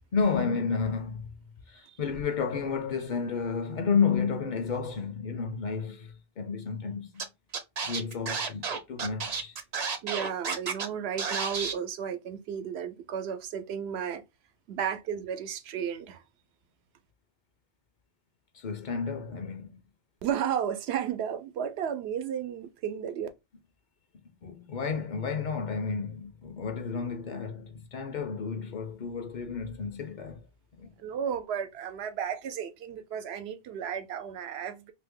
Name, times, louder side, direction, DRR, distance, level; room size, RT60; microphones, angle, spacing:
voice 1, 0.1-1.4 1.7-7.3 7.8-9.6 18.5-19.8 24.4-30.5 30.8-30.9, left 5 dB, 55° left, 0.6 m, -31 dB
Scratching (performance technique), 7.2-7.3 7.5-10.9 11.2-11.7, right 5 dB, 50° right, 0.6 m, -31 dB
voice 2, 10.0-14.2 14.7-16.2 20.2-23.3 31.0-34.9, right 8 dB, 90° right, 0.8 m, -33 dB
2.7 x 2.6 x 3.5 m
omnidirectional pair, 1.0 m